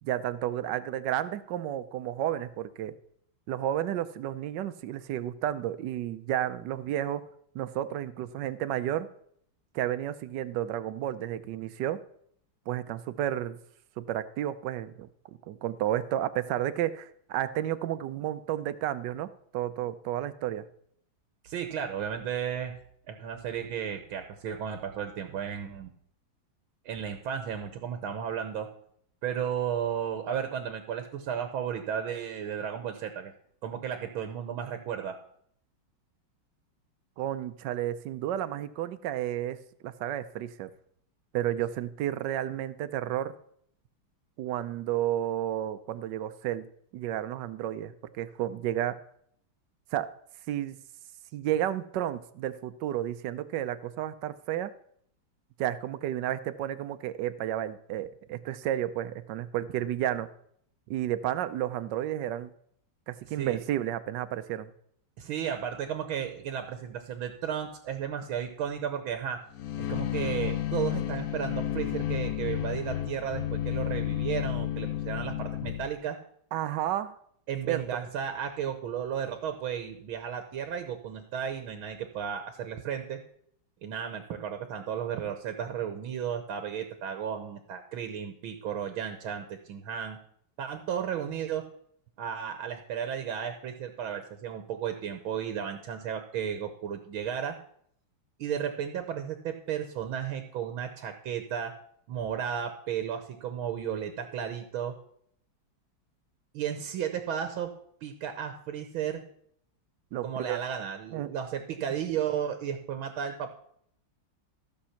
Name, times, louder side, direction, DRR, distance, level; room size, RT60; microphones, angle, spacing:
voice 1, 0.0-2.9 3.5-7.2 7.5-9.1 9.7-12.0 12.7-13.6 14.0-20.7 37.2-40.7 41.3-43.3 44.4-46.7 46.9-49.0 49.9-50.1 50.5-50.8 51.3-54.7 55.6-60.3 60.9-62.5 63.1-64.7 76.5-77.2 77.6-77.8 110.1-110.6 111.1-111.3, right 12 dB, 70° right, 12 dB, 1.2 m, -32 dB
voice 2, 21.4-22.8 23.1-25.9 26.9-28.7 29.2-33.3 33.6-35.2 63.2-63.6 65.2-69.4 69.8-76.2 77.5-83.2 83.8-90.2 90.6-91.7 92.2-97.6 98.4-101.7 102.1-104.9 106.5-107.7 108.0-109.2 110.2-113.5, right 8 dB, 85° right, 7 dB, 1.8 m, -34 dB
sound 1, 69.5-75.9, left 12 dB, 70° left, 0.9 m, -31 dB
14.5 x 6.4 x 5.8 m, 0.68 s
omnidirectional pair, 2.2 m